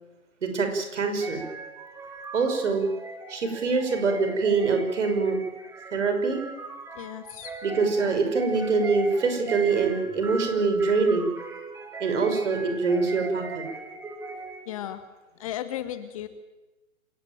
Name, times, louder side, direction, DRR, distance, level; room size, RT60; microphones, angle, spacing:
voice 1, 0.4-1.4 2.3-2.9 3.3-5.4 5.9-6.4 7.6-11.3 12.0-13.7, right 4 dB, 55° right, 6 dB, 5.7 m, -24 dB
sound 1, 1.2-14.8, right 3 dB, 5° right, 1.8 m, -39 dB
voice 2, 7.0-7.5 14.7-15.0 15.4-16.3, left 12 dB, 25° left, 12 dB, 1.0 m, -35 dB
27.0 x 16.5 x 9.1 m, 1.1 s
figure-of-eight pair, 130°, 43 cm